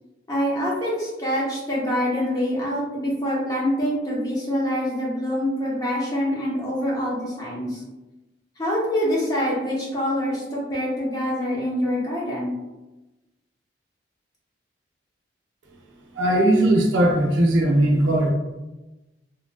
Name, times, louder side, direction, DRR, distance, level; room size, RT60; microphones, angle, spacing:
voice 1, 0.3-7.8 8.6-12.5, equal, 20° left, -6 dB, 0.7 m, -25 dB
voice 2, 16.1-18.3, right 1 dB, 80° right, 0 dB, 0.6 m, -19 dB
3.4 x 2.3 x 2.3 m, 1.0 s
head